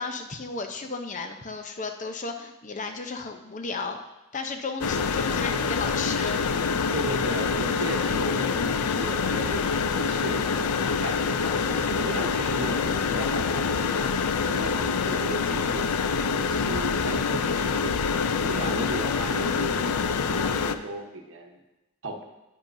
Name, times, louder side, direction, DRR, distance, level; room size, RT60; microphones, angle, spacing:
voice 1, 0.0-4.0 4.3-6.4, left 4 dB, 35° left, 5 dB, 0.7 m, -34 dB
sound 1, 4.8-20.8, left 5 dB, 85° left, 0.4 m, -26 dB
voice 2, 6.9-14.1 14.4-18.0 18.4-21.6 22.0-22.2, right 1 dB, 60° right, 3 dB, 1.0 m, -35 dB
10.0 x 9.8 x 2.6 m, 0.98 s
head